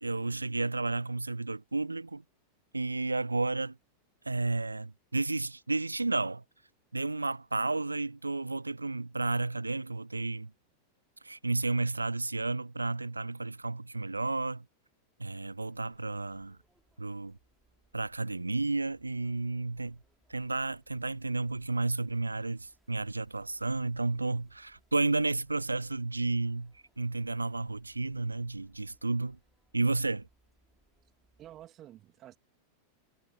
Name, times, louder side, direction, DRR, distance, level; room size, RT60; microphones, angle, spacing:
voice 1, 0.0-2.2 2.7-3.8 4.3-6.4 6.9-10.5 11.2-14.6 15.2-16.6 17.0-17.4 17.9-20.0 20.3-29.4 29.7-30.3, right 3 dB, 80° right, 0.4 m, -32 dB
sound 1, 15.5-31.7, right 2 dB, 5° right, 6.3 m, -70 dB
voice 2, 31.4-32.4, right 13 dB, 30° right, 1.8 m, -50 dB
figure-of-eight pair, 90°, 0 cm